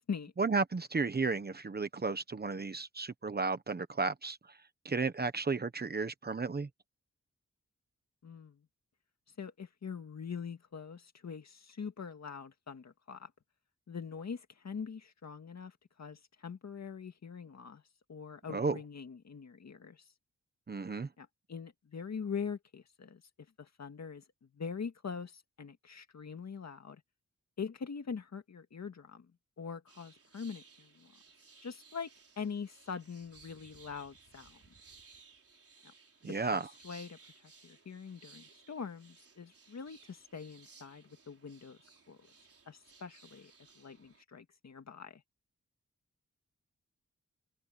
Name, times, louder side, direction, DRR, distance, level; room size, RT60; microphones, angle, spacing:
voice 1, 0.4-4.4 4.8-6.7 18.5-18.8 20.7-21.1 36.2-36.7, right 4 dB, 35° right, 1.1 m, -33 dB
voice 2, 8.2-8.7 9.4-13.3 13.9-17.8 18.1-20.0 21.2-23.2 23.6-27.0 27.6-29.3 29.6-31.1 31.6-32.1 32.4-34.6 36.2-41.8 42.1-42.2 42.7-45.2, left 6 dB, 65° left, 2.1 m, -43 dB
sound 1, 29.9-44.2, right 5 dB, 50° right, 4.4 m, -60 dB
wide cardioid pair, 165°, 29 cm